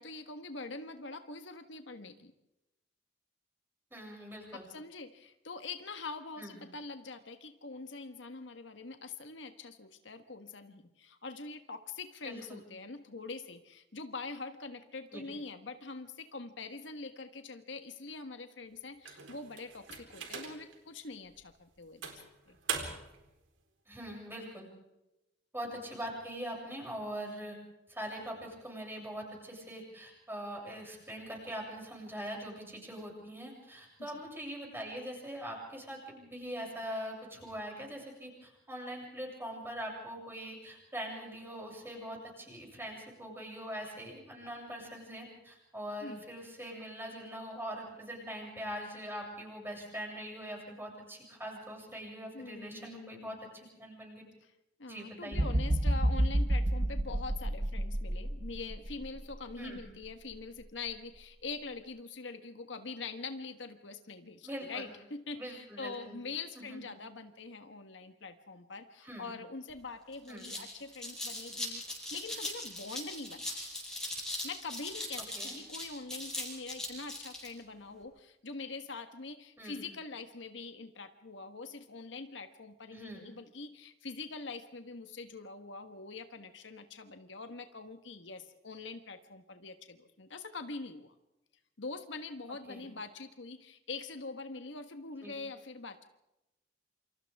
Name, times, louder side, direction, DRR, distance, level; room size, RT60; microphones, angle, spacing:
voice 1, 0.0-2.3 4.5-22.2 22.5-22.6 34.0-34.2 46.0-46.2 52.3-53.4 54.8-73.6 74.4-91.2 91.8-96.0, left 3 dB, 70° left, 7 dB, 1.4 m, -44 dB
voice 2, 3.9-4.7 6.4-6.6 12.2-12.6 15.1-15.3 23.9-24.7 25.5-27.6 27.9-54.2 54.9-55.5 59.6-59.8 64.4-64.9 65.3-66.2 66.6-66.9 69.0-69.3 70.3-70.5 75.4-75.6 79.6-79.9 82.9-83.2 92.7-92.9 95.2-95.3, equal, 10° right, -1 dB, 7.4 m, -42 dB
sound 1, 19.0-20.8 21.3-21.4 22.0-23.2, right 6 dB, 85° right, 3.9 m, -40 dB
sound 2, 55.3-59.3 59.9-60.0, right 1 dB, 35° right, 1.3 m, -30 dB
sound 3, 69.7-69.8 70.1-77.5, left 1 dB, 5° left, 5.9 m, -40 dB
28.0 x 26.5 x 3.6 m, 0.93 s
head